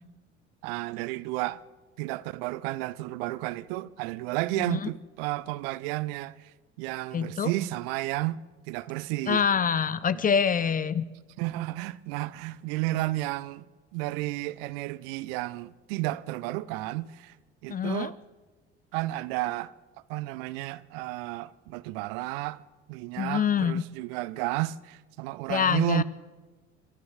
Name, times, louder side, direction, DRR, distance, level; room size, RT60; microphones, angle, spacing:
voice 1, 0.6-1.6 2.0-6.5 6.8-9.4 10.1-10.2 11.4-13.6 13.9-17.4 17.6-18.2 18.9-19.7 20.1-22.6 22.9-26.0, right 18 dB, 55° right, 0.8 m, -32 dB
voice 2, 7.1-7.5 9.3-11.0 17.7-18.1 23.2-23.8 25.5-26.0, left 7 dB, 25° left, 0.7 m, -25 dB
26.0 x 12.5 x 7.8 m
figure-of-eight pair, 60°, 34 cm